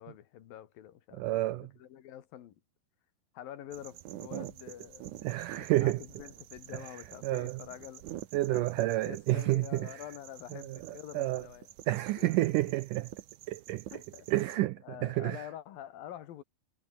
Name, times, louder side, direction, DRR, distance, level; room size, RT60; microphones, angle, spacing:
voice 1, 0.0-2.6 3.3-5.1 5.5-8.1 8.5-11.7 12.2-12.5 13.9-16.4, left 11 dB, 70° left, 3.2 m, -47 dB
voice 2, 1.2-1.7 5.2-6.0 7.2-7.6 8.3-10.0 10.5-10.8 11.1-11.5 11.9-13.1 13.5-13.9 14.3-15.5, right 17 dB, 85° right, 1.8 m, -30 dB
sound 1, 3.7-14.6, right 13 dB, 65° right, 2.1 m, -48 dB
omnidirectional pair, 4.5 m